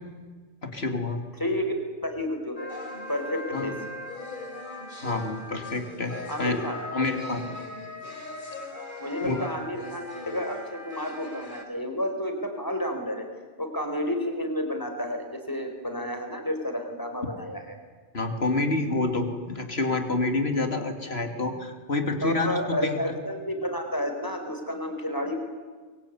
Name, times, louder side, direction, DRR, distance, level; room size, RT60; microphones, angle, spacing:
voice 1, 0.6-1.2 3.5-3.7 5.0-6.6 6.9-7.5 9.2-9.5 18.1-23.0, left 2 dB, 75° left, 6 dB, 3.1 m, -28 dB
voice 2, 1.4-1.7 2.0-2.7 3.1-3.7 6.3-6.8 9.0-13.2 13.6-17.8 22.2-25.4, left 1 dB, 20° left, 4 dB, 4.4 m, -31 dB
sound 1, 2.6-11.6, left 2 dB, 50° left, 3.5 m, -39 dB
24.0 x 23.0 x 9.7 m, 1.4 s
omnidirectional pair, 1.1 m